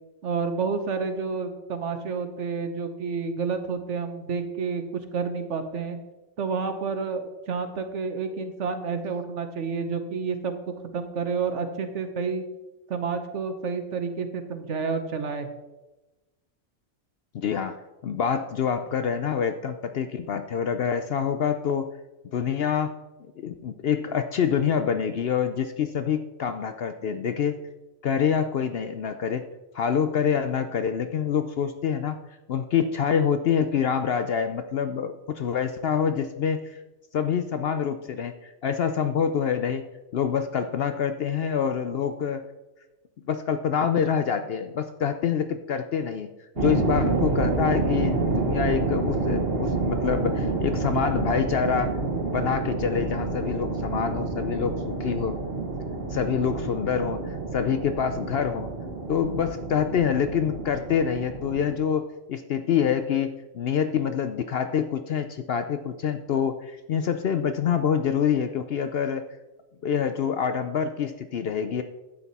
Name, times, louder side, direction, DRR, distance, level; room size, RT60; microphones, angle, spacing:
voice 1, 0.2-4.8 5.1-6.0 6.4-10.5 10.9-12.4 12.9-15.5, right 5 dB, 65° right, 8 dB, 1.3 m, -29 dB
voice 2, 17.3-21.9 22.3-22.9 23.4-27.6 28.0-29.4 29.7-32.2 32.5-36.8 37.1-39.8 40.1-42.4 43.3-46.3 46.6-52.0 52.3-55.4 56.1-58.7 59.1-69.3 69.8-71.8, left 7 dB, 60° left, 9 dB, 0.7 m, -26 dB
sound 1, 46.6-61.8, right 3 dB, 45° right, 1.4 m, -28 dB
11.5 x 8.1 x 4.1 m, 1.1 s
omnidirectional pair, 1.4 m